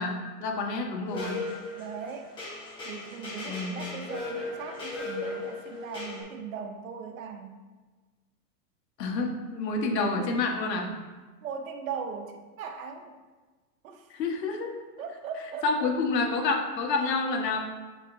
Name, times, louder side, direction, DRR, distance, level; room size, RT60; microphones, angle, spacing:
voice 1, 0.0-1.4 3.5-3.9 9.0-10.9 14.1-14.7 15.6-17.6, left 3 dB, 85° left, 1 dB, 1.6 m, -28 dB
sound 1, 1.1-6.2, left 3 dB, 10° left, 1.3 m, -37 dB
voice 2, 1.8-2.3 2.8-7.6 11.4-13.2 13.8-14.1 15.0-15.9 17.0-17.1, right 6 dB, 55° right, 6 dB, 0.8 m, -39 dB
8.8 x 5.2 x 2.7 m, 1.3 s
supercardioid pair, 175°, 48 cm